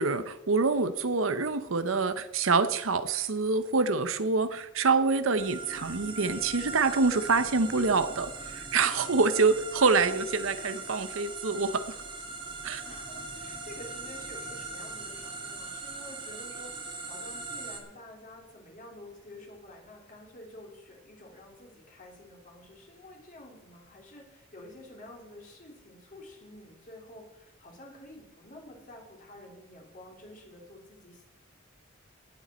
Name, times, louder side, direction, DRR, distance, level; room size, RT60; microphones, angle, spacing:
voice 1, 0.0-11.8 12.6-12.8, right 4 dB, 70° right, 11 dB, 0.8 m, -26 dB
sound 1, 5.4-17.8, right 3 dB, 25° right, 1.9 m, -40 dB
voice 2, 12.8-31.2, left 1 dB, 40° left, -1 dB, 3.2 m, -49 dB
18.0 x 7.9 x 4.3 m, 0.93 s
head